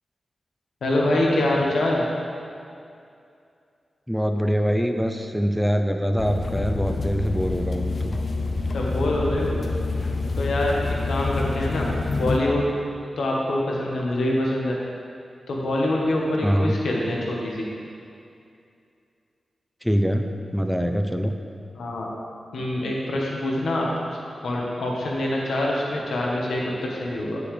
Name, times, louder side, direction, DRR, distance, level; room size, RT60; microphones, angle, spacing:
voice 1, 0.8-2.0 8.7-9.6 10.3-12.7 13.2-14.8 15.5-17.7 21.7-22.1 22.5-24.2 24.4-27.4, left 1 dB, 85° left, -3 dB, 1.3 m, -25 dB
voice 2, 4.1-8.2 16.4-16.7 19.8-20.3 20.5-21.3, equal, ahead, 5 dB, 0.6 m, -24 dB
sound 1, 6.2-12.4, left 3 dB, 55° left, 0.7 m, -27 dB
9.6 x 6.8 x 3.4 m, 2.5 s
cardioid pair, 65°, 0 cm